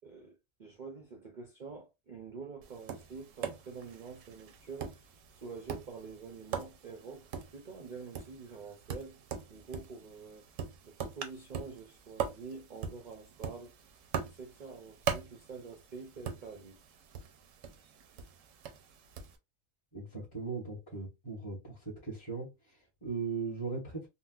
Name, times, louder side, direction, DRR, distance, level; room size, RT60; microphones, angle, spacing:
voice 1, 0.0-5.0 5.4-9.2 9.5-10.5 10.8-13.7 14.2-16.8, right 4 dB, 50° right, 0.6 m, -47 dB
Tap, 2.6-19.4, right 7 dB, 75° right, 0.9 m, -42 dB
voice 2, 19.9-24.1, right 4 dB, 20° left, 1.0 m, -39 dB
3.8 x 2.1 x 2.3 m
omnidirectional pair, 1.4 m